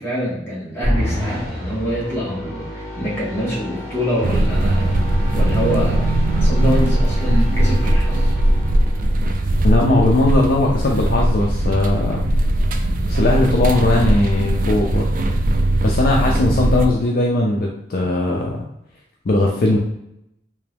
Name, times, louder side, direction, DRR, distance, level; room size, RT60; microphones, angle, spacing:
voice 1, 0.0-5.0 5.3-6.0 6.4-8.3, equal, 15° left, -6 dB, 1.3 m, -25 dB
sound 1, 0.8-10.2, equal, 15° right, 1.4 m, -30 dB
sound 2, 4.2-16.9, right 1 dB, 50° right, 0.4 m, -19 dB
voice 2, 9.6-12.3 13.1-15.0 15.8-18.6 19.3-19.8, left 2 dB, 55° left, -1 dB, 0.5 m, -18 dB
3.4 x 3.0 x 3.3 m, 0.82 s
head